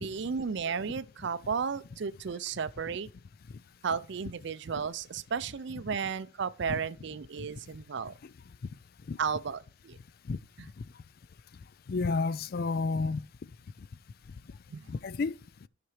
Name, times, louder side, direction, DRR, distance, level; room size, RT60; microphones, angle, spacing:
voice 1, 0.0-3.1 3.8-8.1 9.2-10.0 10.6-10.7 14.7-14.9, right 6 dB, 60° right, 0.4 m, -34 dB
voice 2, 11.9-13.2 14.9-15.3, left 4 dB, 50° left, 0.4 m, -30 dB
12.5 x 5.9 x 3.3 m
head